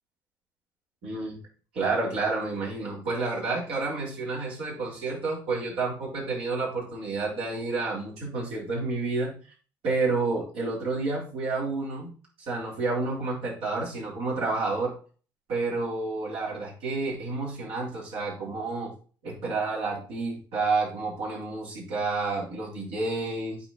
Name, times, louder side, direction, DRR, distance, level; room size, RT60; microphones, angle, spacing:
voice 1, 1.0-1.4 1.7-9.3 9.8-12.1 12.4-14.9 15.5-18.9 19.2-23.6, right 3 dB, 65° right, -4 dB, 4.2 m, -30 dB
8.6 x 4.7 x 4.1 m, 0.38 s
hypercardioid pair, 55°, 11 cm